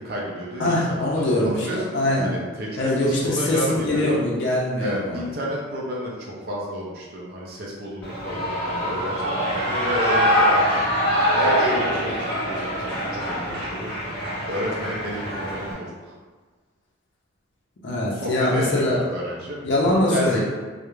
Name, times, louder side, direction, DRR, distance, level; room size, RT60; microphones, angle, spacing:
voice 1, 0.0-4.2 4.8-13.9 14.5-16.1 18.1-19.6 20.1-20.4, equal, 50° right, -4 dB, 0.4 m, -31 dB
voice 2, 0.6-1.7 1.9-2.3 2.8-5.2 17.8-19.0 19.6-20.4, left 1 dB, 55° left, -5 dB, 0.5 m, -22 dB
Shout / Cheering, 8.0-15.7, equal, 5° left, 0.8 m, -24 dB
2.3 x 2.0 x 3.0 m, 1.4 s
head